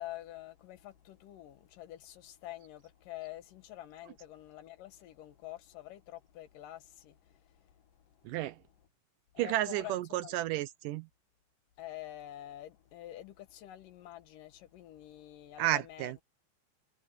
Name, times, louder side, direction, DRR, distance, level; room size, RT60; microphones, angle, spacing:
voice 1, 0.0-7.7 9.3-10.4 11.8-16.2, left 14 dB, 85° left, 3.0 m, -47 dB
voice 2, 8.3-8.6 9.4-11.1 15.6-16.2, right 14 dB, 80° right, 2.3 m, -32 dB
omnidirectional pair, 3.7 m